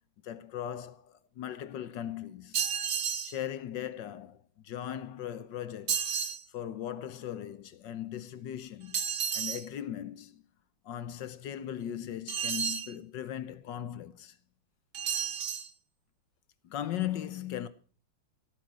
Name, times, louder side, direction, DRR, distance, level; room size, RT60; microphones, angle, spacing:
voice 1, 0.2-2.6 3.2-4.4 4.6-6.1 6.5-9.0 9.3-10.4 10.8-14.3 16.6-17.7, left 11 dB, 70° left, 1.5 m, -38 dB
sound 1, 2.5-3.4 5.9-6.4 8.9-9.6 12.3-12.9 14.9-15.7, right 7 dB, 55° right, 1.6 m, -31 dB
17.0 x 9.2 x 6.1 m
omnidirectional pair, 2.1 m